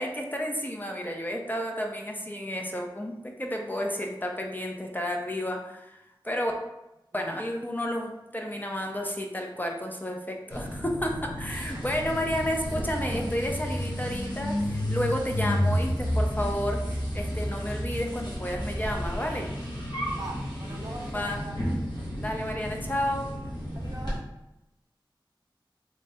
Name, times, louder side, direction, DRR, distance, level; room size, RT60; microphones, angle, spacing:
voice 1, 0.0-6.0 6.2-6.5 7.1-16.8 17.1-19.5 21.1-21.4 22.1-23.3, equal, 20° left, 1 dB, 0.5 m, -31 dB
sound 1, 10.5-24.2, equal, 60° left, 1.2 m, -31 dB
voice 2, 20.1-21.7 23.8-24.2, right 2 dB, 45° right, 0 dB, 0.7 m, -42 dB
3.1 x 2.7 x 3.4 m, 0.92 s
wide cardioid pair, 45°, 9 cm